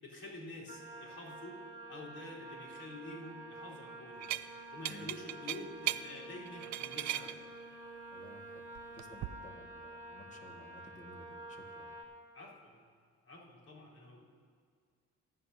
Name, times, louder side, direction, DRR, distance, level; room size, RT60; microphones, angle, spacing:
voice 1, 0.0-1.6 1.9-4.4 4.7-7.3 12.3-12.8 13.2-14.2, left 2 dB, 50° left, -7 dB, 4.1 m, -48 dB
sound 1, 0.7-12.0, right 2 dB, 15° right, 2.2 m, -49 dB
sound 2, 4.2-4.5 4.8-6.0 6.5-7.3 8.7-9.3, right 14 dB, 70° right, 0.5 m, -37 dB
voice 2, 8.1-8.6 8.9-11.9, equal, 25° left, 1 dB, 1.9 m, -55 dB
25.0 x 9.8 x 2.8 m, 2.1 s
cardioid pair, 90°, 30 cm